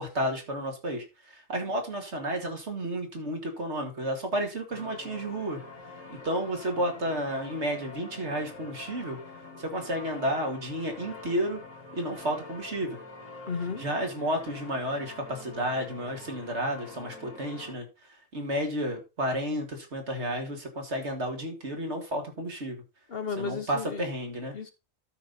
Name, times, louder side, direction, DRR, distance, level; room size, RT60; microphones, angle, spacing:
voice 1, 0.0-5.6 6.1-9.2 9.6-11.6 11.9-13.0 13.8-17.9 18.3-22.8 23.4-24.5, equal, 55° right, 2.3 m, -31 dB
sound 1, 4.7-17.7, left 3 dB, 80° left, 2.7 m, -45 dB
voice 2, 13.5-13.8 23.1-24.1 24.5-24.7, left 5 dB, 50° left, 1.1 m, -33 dB
12.5 x 5.3 x 4.0 m
omnidirectional pair, 1.4 m